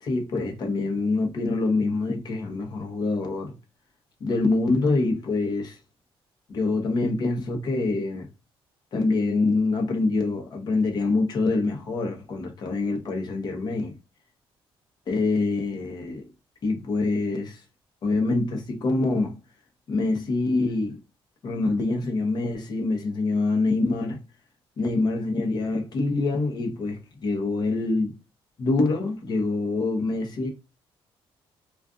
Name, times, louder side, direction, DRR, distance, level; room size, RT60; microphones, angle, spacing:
voice 1, 0.0-3.5 4.2-5.8 6.5-8.3 8.9-14.0 15.1-16.3 16.6-17.6 18.0-19.3 19.9-21.0 21.4-24.2 24.8-28.1 28.6-30.5, left 3 dB, 45° left, 0.8 m, -25 dB
2.4 x 2.4 x 2.3 m
cardioid pair, 140°, 10 cm